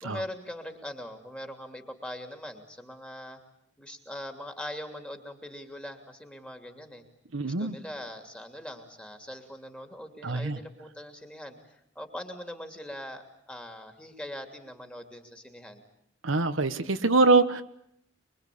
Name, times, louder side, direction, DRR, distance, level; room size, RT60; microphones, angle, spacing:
voice 1, 0.0-3.4 3.8-7.0 7.4-15.8, left 1 dB, 5° left, 5 dB, 2.9 m, -41 dB
voice 2, 7.3-7.8 10.2-10.6 16.2-17.6, right 3 dB, 80° right, 9 dB, 1.4 m, -24 dB
25.0 x 23.5 x 8.6 m, 0.73 s
head